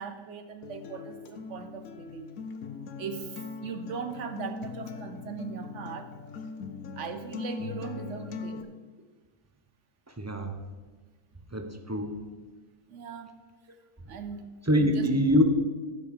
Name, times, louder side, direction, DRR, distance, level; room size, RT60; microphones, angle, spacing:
voice 1, 0.0-2.3 3.0-6.1 7.0-8.6 12.9-13.4 14.1-14.5 14.8-15.1, right 6 dB, 60° right, 9 dB, 1.0 m, -39 dB
Acoustic guitar, 0.6-8.6, left 5 dB, 70° left, 1.2 m, -40 dB
voice 2, 10.2-10.5 11.5-12.2 14.7-15.4, equal, 15° right, 5 dB, 0.7 m, -24 dB
13.5 x 5.4 x 6.5 m, 1.3 s
omnidirectional pair, 1.6 m